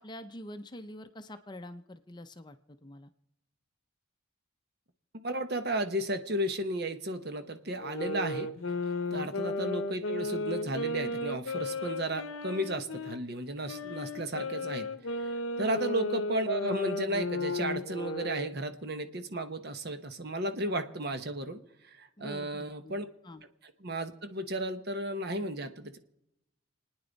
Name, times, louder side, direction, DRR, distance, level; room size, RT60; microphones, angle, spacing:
voice 1, 0.0-2.6 2.8-3.1 9.1-9.3 15.6-15.8 22.2-23.4, left 1 dB, 20° left, 9 dB, 0.6 m, -46 dB
voice 2, 5.2-8.5 9.1-14.9 15.2-21.6 22.0-23.1 23.8-26.0, right 1 dB, 50° right, 8 dB, 1.1 m, -34 dB
sound 1, 7.8-13.2 13.7-18.5, left 2 dB, 75° left, 0.7 m, -34 dB
29.0 x 9.7 x 4.0 m, 0.86 s
head